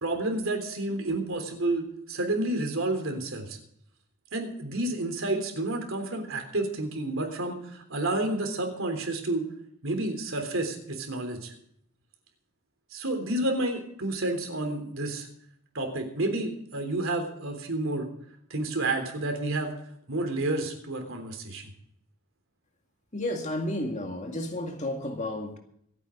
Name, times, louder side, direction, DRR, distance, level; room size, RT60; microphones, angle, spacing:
voice 1, 0.0-3.6 4.3-9.5 9.8-11.5 12.9-15.3 15.7-18.1 18.5-19.7 20.1-21.7, right 2 dB, 65° right, 3.5 m, -30 dB
voice 2, 23.1-25.6, left 1 dB, 35° left, 2.1 m, -32 dB
27.0 x 9.2 x 3.8 m
head